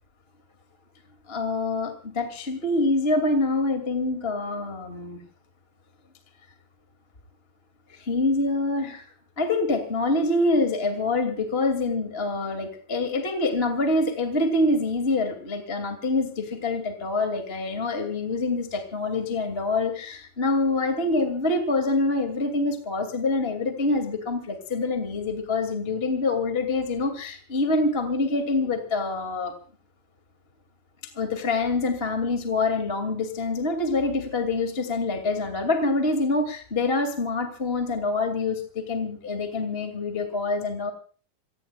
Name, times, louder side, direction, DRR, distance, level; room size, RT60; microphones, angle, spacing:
voice 1, 1.3-5.2 7.9-29.5 31.0-40.9, left 2 dB, 20° left, 6 dB, 2.2 m, -26 dB
27.5 x 18.5 x 2.4 m, 0.41 s
omnidirectional pair, 3.8 m